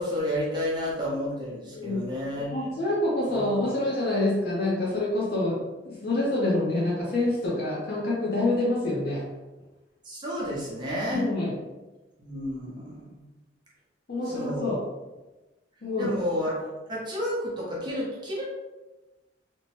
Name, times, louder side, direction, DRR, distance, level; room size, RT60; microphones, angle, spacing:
voice 1, 0.0-2.6 3.3-3.7 10.0-11.3 12.2-13.2 14.3-14.8 16.0-16.6 16.9-18.5, equal, 25° right, -5 dB, 0.7 m, -31 dB
voice 2, 1.7-2.1 2.5-9.3 11.1-11.6 14.1-14.8 15.8-16.1, left 2 dB, 55° left, -5 dB, 0.6 m, -27 dB
2.9 x 2.1 x 2.9 m, 1.1 s
head